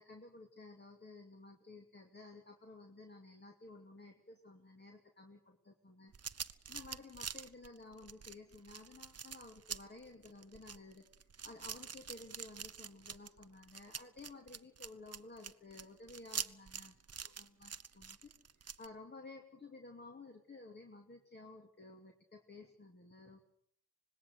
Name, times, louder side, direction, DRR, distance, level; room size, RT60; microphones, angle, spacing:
voice 1, 0.0-6.1 6.7-11.1 11.4-17.0 17.2-23.4, left 2 dB, 25° left, 4 dB, 2.6 m, -54 dB
sound 1, 6.1-18.9, right 6 dB, 40° right, 0.9 m, -46 dB
25.5 x 20.5 x 8.0 m, 0.64 s
wide cardioid pair, 120°, 38 cm